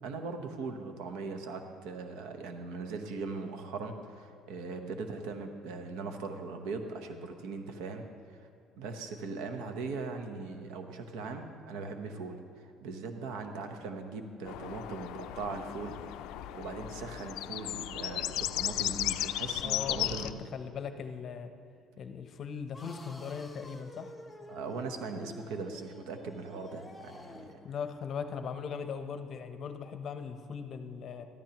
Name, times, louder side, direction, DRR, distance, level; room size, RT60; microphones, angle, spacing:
voice 1, 0.0-8.0 8.8-12.4 12.6-16.0 16.5-20.4 24.5-27.6, right 4 dB, 85° right, 6 dB, 0.9 m, -40 dB
sound 1, 14.5-20.3, left 14 dB, 80° left, 0.3 m, -35 dB
voice 2, 19.6-21.5 22.0-24.1 27.6-31.3, left 6 dB, 45° left, 8 dB, 0.7 m, -39 dB
sound 2, 22.7-27.7, left 2 dB, 5° left, 0.8 m, -49 dB
13.5 x 13.5 x 2.9 m, 2.3 s
cardioid pair, 120°, 0 cm